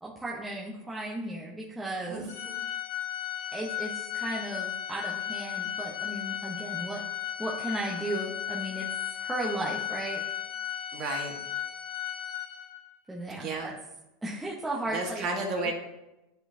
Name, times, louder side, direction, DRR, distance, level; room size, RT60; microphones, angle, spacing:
voice 1, 0.0-2.3 3.5-7.0 7.4-8.9 9.2-10.2 13.1-13.7 14.2-15.2 15.6-15.7, right 1 dB, 5° right, -5 dB, 0.8 m, -35 dB
voice 2, 2.0-2.6 10.9-11.4 13.3-13.7 14.9-15.7, right 3 dB, 40° right, 1 dB, 1.5 m, -33 dB
Organ, 2.3-12.9, left 11 dB, 85° left, 0.9 m, -35 dB
9.7 x 4.0 x 2.7 m, 0.95 s
supercardioid pair, 140°, 0 cm